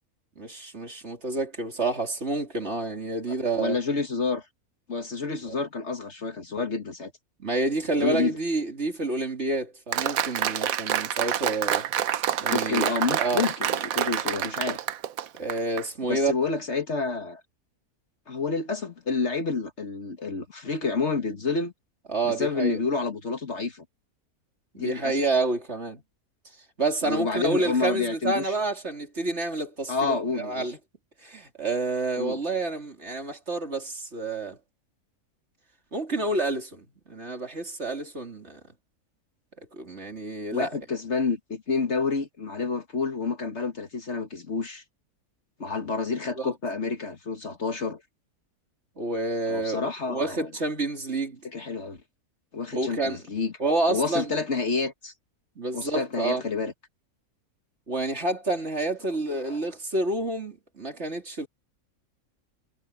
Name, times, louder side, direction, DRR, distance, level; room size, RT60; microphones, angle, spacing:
voice 1, 0.4-3.8 5.4-5.5 7.4-11.9 12.4-12.9 13.2-13.4 15.4-16.3 22.1-22.8 24.7-26.0 26.8-30.8 31.2-34.6 35.9-38.6 39.8-40.7 46.4-46.5 49.0-51.4 52.7-53.2 53.6-54.4 55.6-56.4 57.9-61.5, right 2 dB, 45° right, 3.6 m, -29 dB
voice 2, 3.3-4.5 4.9-7.1 7.9-8.4 12.5-14.8 16.1-17.4 18.3-21.7 22.2-23.8 24.8-25.2 27.0-28.4 29.9-30.7 32.2-32.4 40.5-44.8 45.6-48.0 49.5-50.5 51.4-52.0 52.5-53.5 53.9-55.1 55.7-56.7 59.5-59.6, left 4 dB, 50° left, 1.8 m, -29 dB
Applause, 9.9-15.8, right 10 dB, 70° right, 1.2 m, -27 dB
omnidirectional pair, 1.6 m